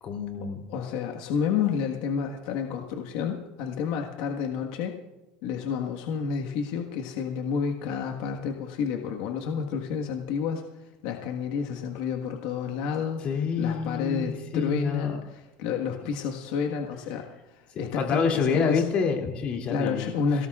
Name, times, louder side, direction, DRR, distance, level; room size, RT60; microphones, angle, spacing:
voice 1, 0.0-0.6 13.2-15.2 17.9-20.1, left 5 dB, 45° left, 2 dB, 2.8 m, -27 dB
voice 2, 0.7-5.0 5.4-13.2 13.6-18.8 19.7-20.5, left 6 dB, 75° left, 2 dB, 1.5 m, -30 dB
28.5 x 18.0 x 2.4 m, 1.0 s
cardioid pair, 135°, 3 cm